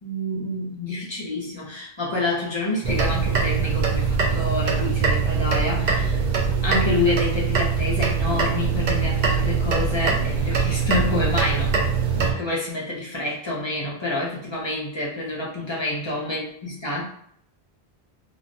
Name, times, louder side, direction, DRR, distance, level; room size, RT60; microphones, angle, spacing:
voice 1, 0.0-6.2 6.6-17.0, left 2 dB, 35° left, -5 dB, 0.5 m, -28 dB
sound 1, 2.8-12.3, right 5 dB, 55° right, 0.5 m, -22 dB
2.4 x 2.0 x 2.6 m, 0.68 s
omnidirectional pair, 1.1 m